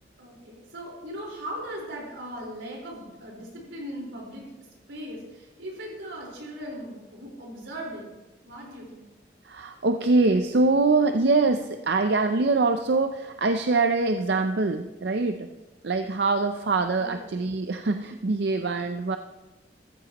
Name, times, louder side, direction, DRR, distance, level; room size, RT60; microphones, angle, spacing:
voice 1, 0.2-4.5 4.9-8.1 8.4-9.0 17.0-17.2, equal, 90° right, -2 dB, 4.5 m, -38 dB
voice 2, 9.4-15.5 15.8-19.2, right 3 dB, 65° right, 7 dB, 0.5 m, -24 dB
15.0 x 14.0 x 3.0 m, 1.1 s
head